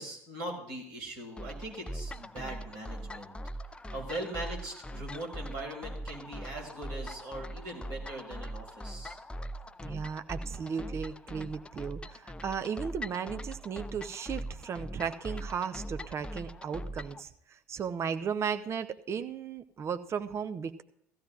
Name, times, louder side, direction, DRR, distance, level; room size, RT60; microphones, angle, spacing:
voice 1, 0.0-3.3 3.9-9.2, right 1 dB, 55° right, -1 dB, 4.4 m, -40 dB
sound 1, 1.4-17.2, equal, 10° left, 0.5 m, -41 dB
voice 2, 9.8-20.8, right 7 dB, 30° right, 9 dB, 0.7 m, -35 dB
18.0 x 14.5 x 2.5 m, 0.71 s
figure-of-eight pair, 65°, 9 cm